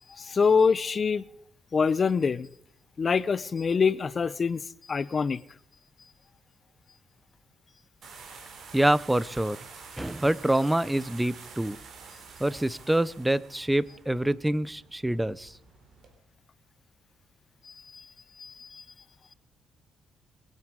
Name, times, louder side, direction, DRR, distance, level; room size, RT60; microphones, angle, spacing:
voice 1, 0.1-1.2 1.7-2.5 3.0-5.4 17.7-18.1 18.4-18.8, left 5 dB, 40° left, 0.7 m, -25 dB
sound 1, 8.0-16.1, right 5 dB, 60° right, 3.8 m, -48 dB
voice 2, 8.7-9.6 10.0-11.8 12.4-15.5, right 1 dB, 10° right, 0.7 m, -26 dB
22.5 x 9.4 x 5.2 m
cardioid pair, 90°, 0 cm